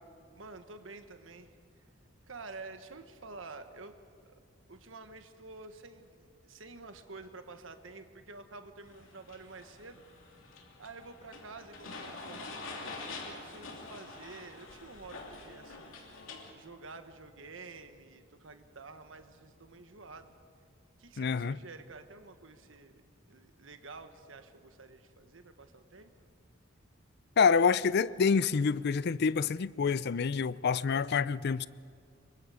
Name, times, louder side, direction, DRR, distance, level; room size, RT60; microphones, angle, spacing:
voice 1, 0.3-1.6 2.3-3.9 4.2-4.4 4.7-10.0 10.8-16.0 16.5-20.4 21.0-23.0 23.3-26.1, right 3 dB, 75° right, 1.4 m, -49 dB
sound 1, 8.9-16.5, left 3 dB, 80° left, 3.0 m, -46 dB
voice 2, 21.2-21.6 27.4-31.7, left 5 dB, 55° left, 0.5 m, -27 dB
26.0 x 23.0 x 5.0 m
head